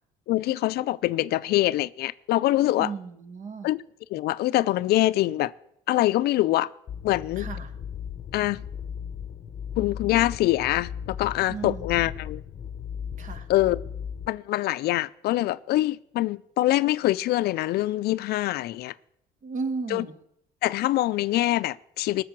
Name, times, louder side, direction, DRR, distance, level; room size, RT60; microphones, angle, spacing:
voice 1, 0.3-2.9 3.6-3.8 4.1-5.5 5.9-6.7 7.0-7.5 8.3-8.6 9.8-12.4 13.5-13.8 14.3-18.9 19.9-20.0 20.6-22.2, left 16 dB, 70° left, 0.4 m, -24 dB
voice 2, 2.8-3.7 7.4-7.7 11.5-12.0 13.2-13.5 19.4-20.1, right 4 dB, 50° right, 1.6 m, -34 dB
sound 1, 6.9-14.3, left 8 dB, 40° left, 0.8 m, -37 dB
18.0 x 6.8 x 7.4 m
cardioid pair, 110°, 17 cm